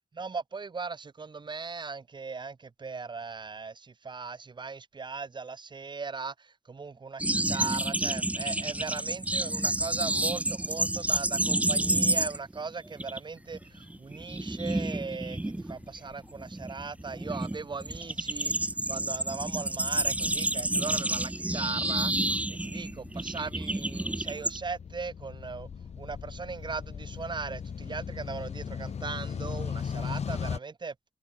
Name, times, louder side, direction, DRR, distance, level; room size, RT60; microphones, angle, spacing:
voice 1, 0.1-18.5 18.9-25.7 26.0-30.9, right 4 dB, 45° right, 1.8 m, -39 dB
sound 1, 7.2-12.6 12.9-13.2 13.5-24.6, right 1 dB, 10° right, 0.8 m, -29 dB
sound 2, 13.6-30.6, left 6 dB, 80° left, 6.6 m, -40 dB
wide cardioid pair, 105°, 11 cm